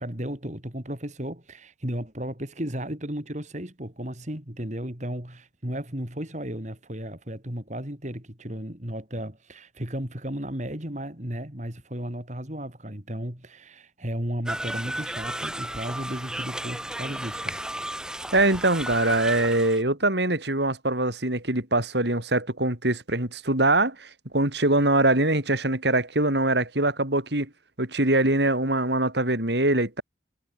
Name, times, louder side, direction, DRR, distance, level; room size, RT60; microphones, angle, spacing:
voice 1, 0.0-17.6, right 1 dB, 40° right, 3.9 m, -34 dB
sound 1, 14.5-19.8, right 1 dB, 5° right, 2.1 m, -34 dB
voice 2, 18.3-27.5 27.8-30.0, right 2 dB, 65° right, 4.8 m, -23 dB
head